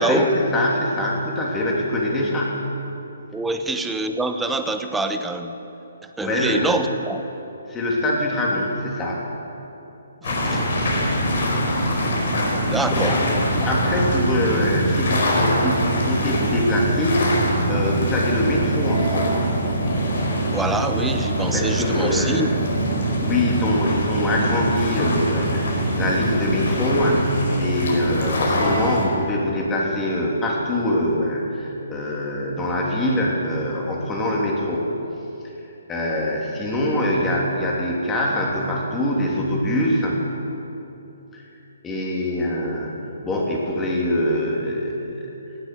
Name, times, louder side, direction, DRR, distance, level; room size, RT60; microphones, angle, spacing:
voice 1, 0.0-2.6 6.2-6.8 7.7-9.2 12.9-13.2 13.6-19.4 21.5-22.5 23.2-27.3 27.6-34.9 35.9-40.3 41.3-41.4 41.8-45.4, left 1 dB, 15° left, -3 dB, 3.1 m, -23 dB
voice 2, 3.3-5.5 6.2-7.2 10.2-10.8 12.7-13.1 13.6-13.7 20.5-22.5, right 2 dB, 5° right, 7 dB, 0.8 m, -25 dB
sound 1, 10.2-29.1, equal, 60° left, 4.5 m, -23 dB
17.5 x 8.2 x 9.6 m, 3.0 s
hypercardioid pair, 145°, 0 cm